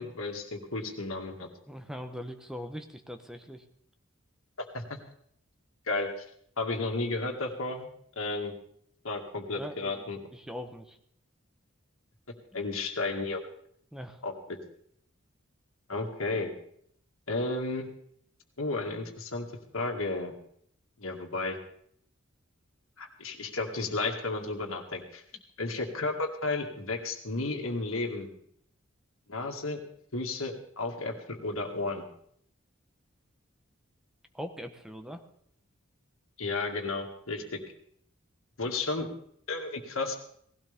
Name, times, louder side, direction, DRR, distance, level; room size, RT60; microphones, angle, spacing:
voice 1, 0.0-1.5 4.7-5.0 5.9-6.1 6.6-7.9 8.2-8.5 9.0-10.2 12.5-13.4 14.2-14.6 15.9-16.5 17.3-17.9 18.6-19.5 19.7-20.3 21.0-21.6 23.0-25.2 25.6-28.3 29.3-29.8 30.1-32.0 36.4-37.6 38.6-39.1 39.5-40.2, left 3 dB, 80° left, 3 dB, 2.1 m, -33 dB
voice 2, 1.7-3.6 9.6-10.0 10.3-11.0 12.5-12.6 13.9-14.2 34.3-35.2 38.7-38.8, equal, 5° right, 7 dB, 0.9 m, -41 dB
18.0 x 16.5 x 3.5 m, 0.67 s
head